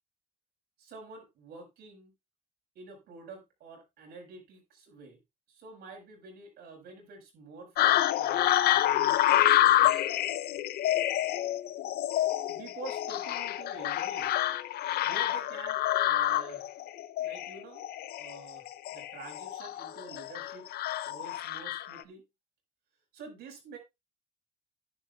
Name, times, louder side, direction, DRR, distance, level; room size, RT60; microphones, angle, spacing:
voice 1, 0.8-2.1 2.8-5.2 5.5-9.9 12.5-14.4 15.0-16.6 17.2-17.9 18.2-20.7 21.0-22.2 23.1-23.8, right 3 dB, 70° right, 3 dB, 5.4 m, -48 dB
sound 1, 7.8-22.0, left 13 dB, 70° left, 0.7 m, -28 dB
13.0 x 10.0 x 2.4 m, 0.23 s
cardioid pair, 110°, 17 cm